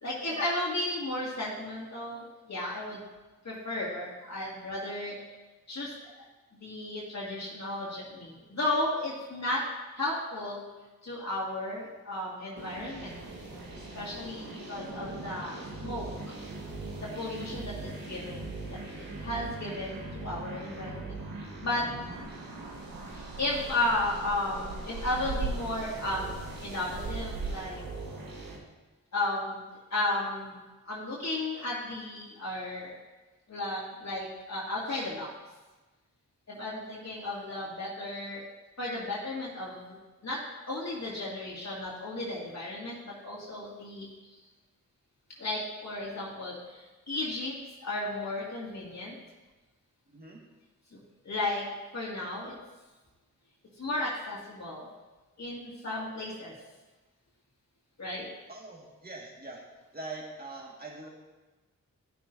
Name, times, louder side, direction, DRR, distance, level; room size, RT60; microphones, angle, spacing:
voice 1, 0.0-3.0 3.4-5.2 5.7-6.3 6.6-9.6 9.9-10.6 11.0-13.1 13.9-16.1 17.0-18.8 19.2-21.9 23.1-26.3 26.6-27.8 29.1-29.6 29.9-30.6 30.9-32.9 33.5-35.3 36.5-38.4 38.8-40.0 40.2-40.4 40.7-44.1 45.4-47.6 47.8-49.1 50.9-51.0 51.2-51.6 51.9-52.6 53.8-54.9 55.4-56.5 58.0-58.3, left 2 dB, 50° left, -6 dB, 2.0 m, -34 dB
sound 1, 12.6-28.6, right 2 dB, 80° right, 1.5 m, -41 dB
sound 2, 22.1-27.5, right 4 dB, 60° right, 1.2 m, -39 dB
voice 2, 50.1-50.4 58.5-59.6 59.9-61.1, right 2 dB, 30° right, -2 dB, 1.7 m, -43 dB
13.0 x 6.0 x 2.6 m, 1.2 s
cardioid pair, 55°, 34 cm